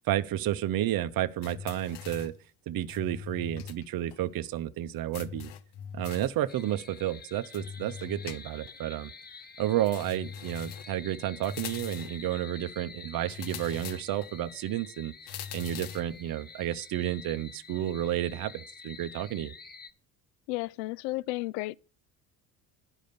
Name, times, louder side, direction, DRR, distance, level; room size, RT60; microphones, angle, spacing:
voice 1, 0.1-2.3 2.7-5.5 5.9-9.1 9.6-15.1 15.5-19.5, right 13 dB, 45° right, 0.8 m, -31 dB
sound 1, 1.4-2.4 2.9-3.9 4.1-4.2 5.1-6.4 7.5-8.8 9.9-11.0 11.4-12.2 13.3-14.3 15.3-16.1, left 8 dB, 55° left, 0.9 m, -42 dB
sound 2, 6.5-19.9, left 5 dB, 20° left, 0.8 m, -48 dB
voice 2, 20.5-21.8, left 21 dB, 75° left, 0.6 m, -33 dB
11.0 x 5.0 x 6.8 m
hypercardioid pair, 75°, 49 cm